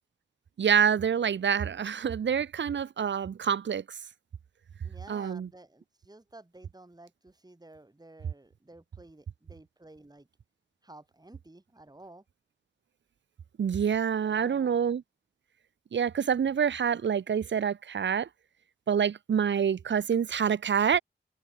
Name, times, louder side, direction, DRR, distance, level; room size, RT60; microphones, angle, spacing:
voice 1, 0.6-3.8 5.1-5.5 13.6-15.0 15.9-18.3 18.9-21.0, right 7 dB, 90° right, 0.5 m, -27 dB
voice 2, 4.8-10.3 10.8-12.2 14.2-14.8, right 2 dB, 20° right, 2.2 m, -52 dB
open air
wide cardioid pair, 60°, 18 cm